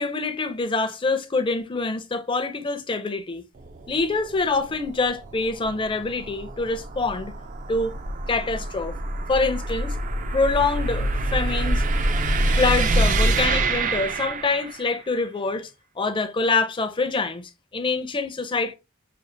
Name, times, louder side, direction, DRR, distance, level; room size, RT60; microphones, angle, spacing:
voice 1, 0.0-3.4 3.9-7.3 7.7-8.0 8.3-8.9 9.3-9.9 10.3-11.8 12.5-15.7 16.0-18.8, left 3 dB, 25° left, 0.5 m, -25 dB
sound 1, 3.6-15.0, right 2 dB, 40° right, 0.4 m, -26 dB
6.1 x 2.4 x 2.6 m
head